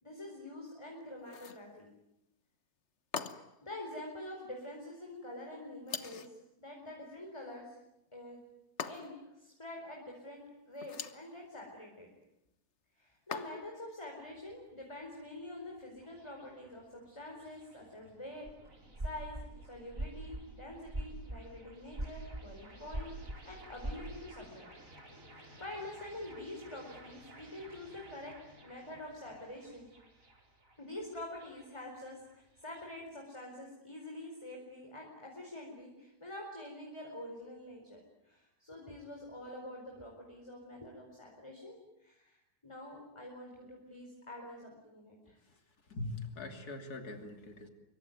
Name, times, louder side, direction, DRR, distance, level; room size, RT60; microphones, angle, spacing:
voice 1, 0.0-1.9 3.6-7.8 8.1-8.4 8.9-10.4 10.7-12.1 13.0-18.5 19.0-19.4 19.6-23.1 23.4-24.7 25.1-28.3 28.6-29.9 30.8-42.4 42.6-45.4, left 1 dB, 15° left, 0 dB, 4.7 m, -46 dB
sound 1, 1.2-1.7 3.1-3.7 5.9-6.4 8.8-9.3 10.8-11.3 13.3-13.8, left 6 dB, 45° left, 1.4 m, -42 dB
sound 2, 14.3-33.0, right 1 dB, 55° right, 4.7 m, -58 dB
sound 3, 18.5-18.6 18.9-19.5 19.9-21.4 21.9-22.5 22.8-23.4 23.8-24.2, right 1 dB, 25° right, 3.0 m, -39 dB
voice 2, 45.9-47.7, left 2 dB, 70° left, 6 dB, 3.5 m, -42 dB
26.0 x 23.5 x 9.4 m, 0.89 s
omnidirectional pair, 1.7 m